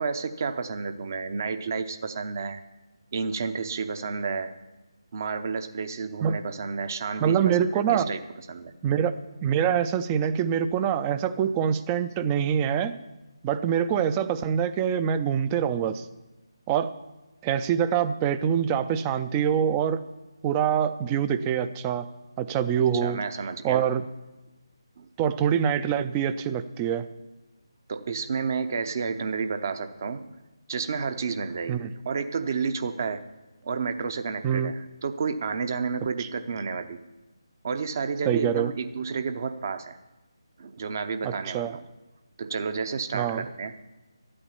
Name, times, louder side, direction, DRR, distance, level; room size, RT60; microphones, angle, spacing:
voice 1, 0.0-2.6 3.1-4.5 5.1-7.7 7.9-8.7 22.8-23.9 25.0-25.1 27.9-30.3 30.7-33.2 33.6-37.0 37.6-40.0 40.6-41.9 42.4-43.8, right 5 dB, 40° right, 10 dB, 0.8 m, -31 dB
voice 2, 7.2-8.1 8.8-13.0 13.4-16.0 16.7-16.9 17.4-20.0 20.4-22.1 22.4-23.2 23.6-24.0 25.2-27.1 31.7-31.9 34.4-34.7 36.2-36.3 38.3-38.7 41.2-41.8 43.1-43.4, right 8 dB, 15° right, 12 dB, 0.4 m, -25 dB
13.5 x 8.8 x 7.0 m, 1.1 s
figure-of-eight pair, 150°, 3 cm